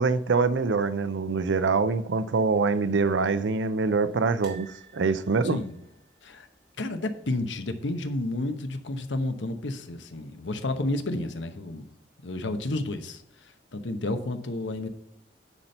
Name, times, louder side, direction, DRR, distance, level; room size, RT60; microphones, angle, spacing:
voice 1, 0.0-5.6, right 4 dB, 80° right, 0.5 m, -24 dB
sound 1, 4.4-7.5 7.7-8.0 8.2-8.3 9.5-10.1 10.6-10.7, right 6 dB, 50° right, 3.1 m, -53 dB
voice 2, 5.4-5.8 6.2-6.5 6.8-11.9 12.2-14.9, left 2 dB, 85° left, 1.0 m, -31 dB
9.9 x 4.4 x 5.4 m
head